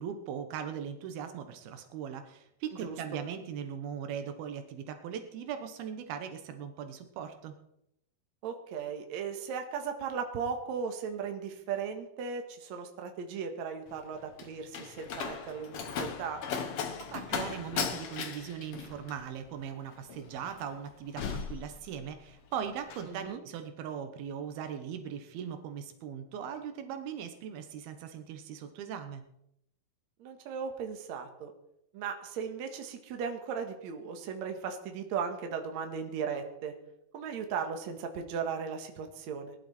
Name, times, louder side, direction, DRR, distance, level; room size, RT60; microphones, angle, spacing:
voice 1, 0.0-7.5 17.0-29.2, right 8 dB, 80° right, 7 dB, 3.0 m, -39 dB
voice 2, 8.4-16.4 23.1-23.4 30.2-31.5 31.9-36.7 37.1-39.6, right 6 dB, 55° right, 5 dB, 2.5 m, -37 dB
Slam, 13.9-22.3 22.6-23.1, left 6 dB, 60° left, 1.6 m, -38 dB
20.0 x 11.5 x 4.3 m, 0.78 s
omnidirectional pair, 4.3 m